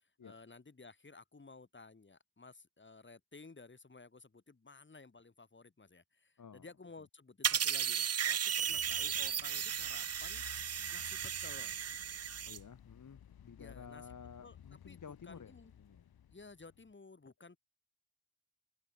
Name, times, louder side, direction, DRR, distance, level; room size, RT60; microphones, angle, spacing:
voice 1, 0.2-10.4 10.9-11.9 13.6-14.0 14.4-14.6 14.9-15.0 15.3-15.7 16.3-17.6, left 3 dB, 30° left, 3.7 m, -55 dB
voice 2, 6.4-6.7 7.0-7.1 12.4-16.1, left 6 dB, 55° left, 3.0 m, -53 dB
sound 1, 7.4-12.6, right 8 dB, 40° right, 0.7 m, -35 dB
sound 2, 8.7-16.9, left 9 dB, 75° left, 2.9 m, -57 dB
cardioid pair, 55°, 37 cm